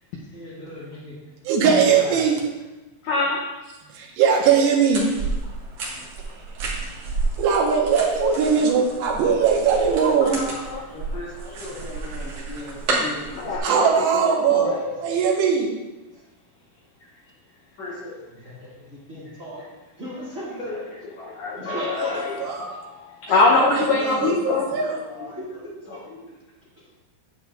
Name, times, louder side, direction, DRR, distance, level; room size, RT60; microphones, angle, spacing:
voice 1, 0.2-1.1 1.6-1.7 2.0-2.2 5.1-5.2 11.8-12.1 13.1-13.7 14.6-15.0 18.3-19.7 20.0-20.9 21.5-22.5 25.4-26.0, left 1 dB, 35° right, -8 dB, 1.4 m, -36 dB
voice 2, 1.5-2.4 3.9-5.1 6.8-7.0 7.4-10.4 13.6-14.7 15.0-15.7 22.4-22.7 23.3-23.7 24.0-25.0, right 6 dB, 75° right, -1 dB, 3.2 m, -20 dB
voice 3, 3.0-3.4 10.2-10.9 13.4-14.8 21.2-22.3 22.7-24.7 25.2-25.3 26.1-26.3, left 3 dB, 85° left, -2 dB, 1.8 m, -24 dB
sound 1, 4.9-13.6, right 3 dB, 55° right, 1.9 m, -31 dB
voice 4, 10.8-13.6 16.1-16.2 17.8-18.2 23.4-25.4 25.9-26.0, left 1 dB, 45° left, -8 dB, 3.2 m, -37 dB
10.0 x 8.6 x 2.5 m, 1.1 s
omnidirectional pair, 5.0 m